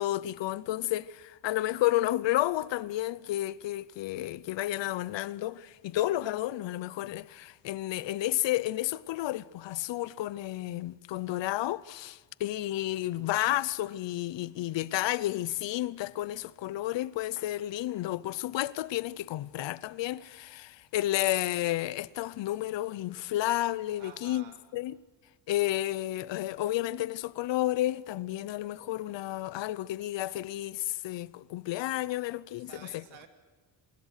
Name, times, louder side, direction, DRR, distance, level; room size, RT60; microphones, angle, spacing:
voice 1, 0.0-24.4 24.7-25.0 25.5-33.0, left 15 dB, 70° left, 0.7 m, -31 dB
voice 2, 24.0-24.6 32.6-33.3, right 8 dB, 85° right, 2.7 m, -51 dB
25.5 x 20.5 x 6.5 m
wide cardioid pair, 165°, 45 cm